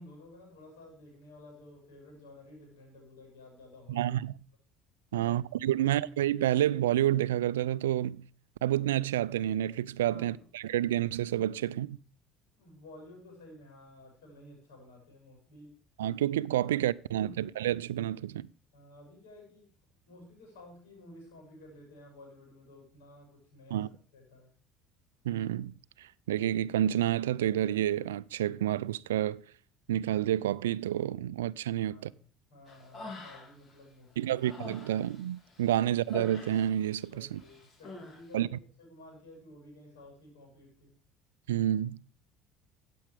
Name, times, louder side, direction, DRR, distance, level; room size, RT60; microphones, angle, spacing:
voice 1, 0.0-4.1 5.1-5.3 5.7-5.8 10.1-10.4 12.5-15.8 16.6-16.8 17.2-17.3 18.7-19.7 20.1-23.8 24.1-24.5 31.8-34.5 37.1-40.9, left 1 dB, 80° left, 7.1 m, -53 dB
voice 2, 3.9-4.3 5.1-8.3 8.6-12.0 16.0-18.5 23.7-23.9 25.2-29.4 29.9-32.1 34.2-37.4 38.3-38.6 41.5-42.0, right 12 dB, 85° right, 0.4 m, -29 dB
Human voice, 32.7-33.7 34.1-37.1 37.3-38.2, left 2 dB, 45° left, 3.8 m, -46 dB
14.5 x 8.6 x 3.4 m
hypercardioid pair, 65°, 0 cm